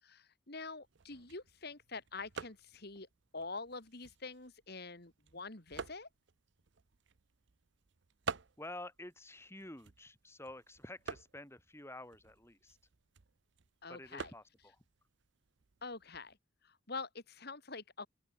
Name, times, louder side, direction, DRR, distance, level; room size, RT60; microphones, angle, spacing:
voice 1, 0.0-3.1 3.3-6.1 13.8-14.3 15.8-16.4 16.6-18.1, left 3 dB, 50° left, 2.3 m, -46 dB
sound 1, 0.8-16.4, right 5 dB, 60° right, 0.7 m, -50 dB
voice 2, 8.6-12.8 13.9-14.8, left 1 dB, 10° left, 5.5 m, -50 dB
open air
head